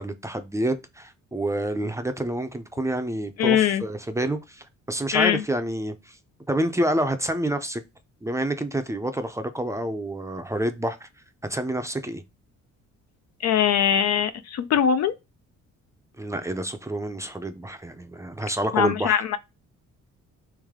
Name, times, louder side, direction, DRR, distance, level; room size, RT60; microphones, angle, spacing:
voice 1, 0.0-6.2 6.5-7.8 8.2-11.1 11.5-12.2 16.2-19.2, right 1 dB, 10° right, 0.5 m, -28 dB
voice 2, 3.4-3.8 5.1-5.4 13.4-15.1 18.7-19.4, left 9 dB, 60° left, 0.5 m, -21 dB
3.3 x 3.1 x 3.6 m
cardioid pair, 90°, 30 cm